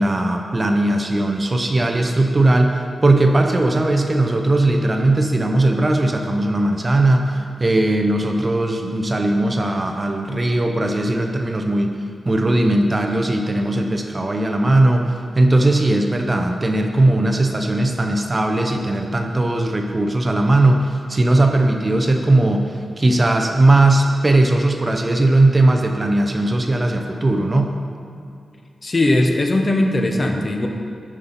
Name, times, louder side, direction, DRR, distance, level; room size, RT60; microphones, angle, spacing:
voice 1, 0.0-12.0 12.3-15.1 15.4-27.7, right 2 dB, 25° right, 3 dB, 0.6 m, -18 dB
voice 2, 28.8-30.7, left 1 dB, 30° left, 3 dB, 0.8 m, -19 dB
12.0 x 5.6 x 4.0 m, 2.4 s
wide cardioid pair, 145°, 0 cm